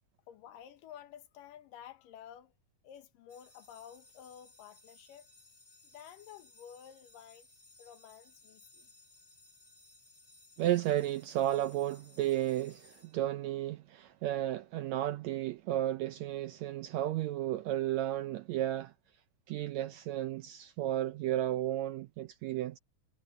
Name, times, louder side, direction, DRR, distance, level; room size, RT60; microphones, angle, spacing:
voice 1, 0.3-2.5 2.8-5.3 5.9-7.5 7.8-8.9, left 9 dB, 85° left, 2.9 m, -52 dB
sound 1, 3.3-13.7, left 2 dB, 15° left, 2.5 m, -61 dB
voice 2, 10.6-18.9 19.5-22.8, right 13 dB, 80° right, 1.6 m, -33 dB
omnidirectional pair, 3.8 m